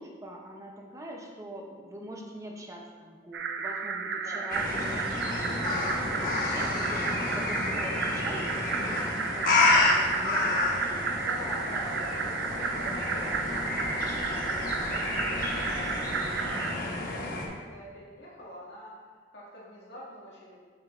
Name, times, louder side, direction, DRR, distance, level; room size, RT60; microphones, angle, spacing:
voice 1, 0.0-11.3 11.5-11.7, equal, 20° right, 0 dB, 0.6 m, -44 dB
sound 1, 3.3-16.7, right 5 dB, 75° right, 0.4 m, -33 dB
voice 2, 4.2-4.5 11.2-18.9 19.3-20.6, equal, 75° left, -7 dB, 1.8 m, -46 dB
sound 2, 4.5-17.5, left 2 dB, 50° left, 1.1 m, -30 dB
sound 3, 11.0-16.5, equal, 5° left, 1.1 m, -45 dB
7.6 x 6.5 x 2.4 m, 1.5 s
head